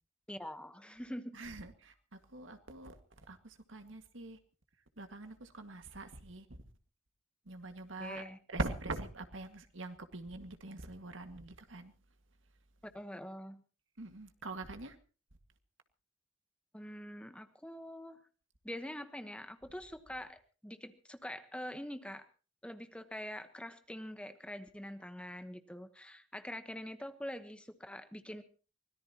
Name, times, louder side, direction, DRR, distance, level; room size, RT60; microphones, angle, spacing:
voice 1, 0.3-1.4 8.0-8.4 12.9-13.6 16.7-18.2 18.6-22.3 22.6-28.4, equal, 5° left, 1.1 m, -45 dB
voice 2, 1.3-4.4 5.0-6.6 7.5-8.2 8.5-11.9 14.0-15.0, right 2 dB, 80° right, 1.9 m, -43 dB
24.0 x 17.5 x 2.9 m
head